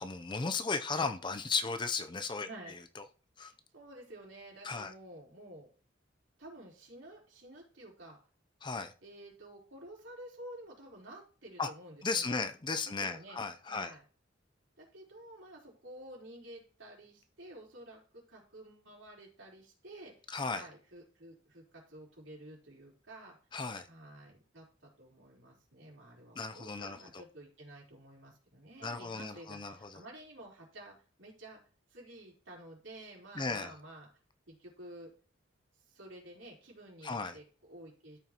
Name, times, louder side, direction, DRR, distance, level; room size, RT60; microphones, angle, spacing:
voice 1, 0.0-2.5 3.4-3.5 4.6-4.9 8.6-8.9 11.6-11.7 12.0-13.9 20.3-20.6 23.5-23.9 26.4-27.2 28.8-30.0 33.4-33.7 37.0-37.4, left 4 dB, 25° left, 0.5 m, -35 dB
voice 2, 3.4-5.7 6.4-8.2 9.0-12.4 12.8-13.4 13.7-14.0 14.8-20.1 20.6-23.4 23.8-31.6 31.9-34.1 34.5-35.1 35.9-38.2, right 1 dB, 75° right, 3.7 m, -51 dB
13.0 x 5.8 x 2.9 m
head